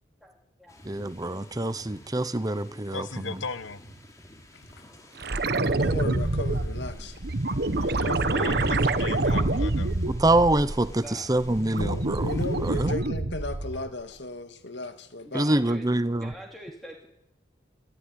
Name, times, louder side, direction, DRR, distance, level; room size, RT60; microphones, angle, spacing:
sound 1, 0.7-12.9, equal, 15° left, 4.4 m, -50 dB
voice 1, 0.9-3.1 10.1-11.0 11.3-12.2 12.6-12.9 15.3-16.3, right 1 dB, 20° right, 1.0 m, -25 dB
voice 2, 2.9-3.8 7.7-9.9, left 4 dB, 80° left, 1.2 m, -37 dB
sound 2, 5.2-11.0 11.4-13.9 16.3-16.4, right 2 dB, 55° right, 1.3 m, -27 dB
voice 3, 5.8-7.2 11.7-15.4, left 2 dB, 65° left, 2.4 m, -35 dB
voice 4, 8.3-9.4 10.8-11.3 15.2-17.1, equal, ahead, 3.3 m, -45 dB
27.5 x 15.0 x 10.0 m
head